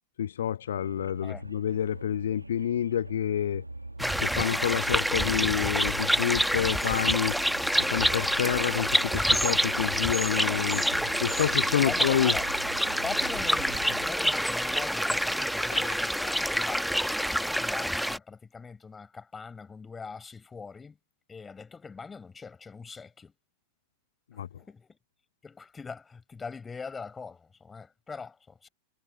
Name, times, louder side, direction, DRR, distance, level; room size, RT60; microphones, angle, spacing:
voice 1, 0.2-3.6 4.2-7.4 7.8-10.8 11.2-12.3 15.8-15.9 24.4-24.5, left 10 dB, 65° left, 0.9 m, -28 dB
sound 1, 0.7-14.1, right 2 dB, 85° right, 2.2 m, -43 dB
sound 2, 4.0-18.2, equal, ahead, 1.3 m, -27 dB
voice 2, 11.9-12.4 13.0-21.0 21.3-23.3 24.3-25.0 25.4-28.7, left 5 dB, 15° left, 5.8 m, -42 dB
figure-of-eight pair, 90°, 0 cm